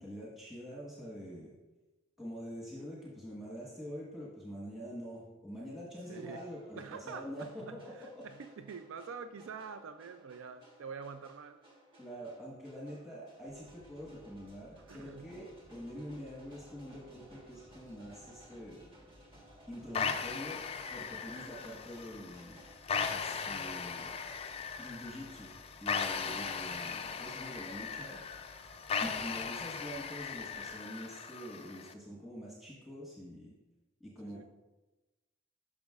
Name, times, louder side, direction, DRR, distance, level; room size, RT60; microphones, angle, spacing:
voice 1, 0.0-1.5 2.2-8.2 12.0-18.9 19.7-22.6 23.1-24.1 24.8-28.2 29.0-33.5 34.0-34.4, equal, ahead, -6 dB, 1.2 m, -45 dB
sound 1, 6.0-22.8, equal, 25° right, 1.3 m, -59 dB
voice 2, 6.1-6.4 6.8-11.6 14.9-15.3 34.2-34.4, right 6 dB, 75° right, 9 dB, 0.4 m, -46 dB
sound 2, 13.5-30.8, equal, 40° right, 0.8 m, -62 dB
sound 3, 19.9-31.9, left 6 dB, 30° left, 0.3 m, -38 dB
10.0 x 6.1 x 2.4 m, 1.1 s
head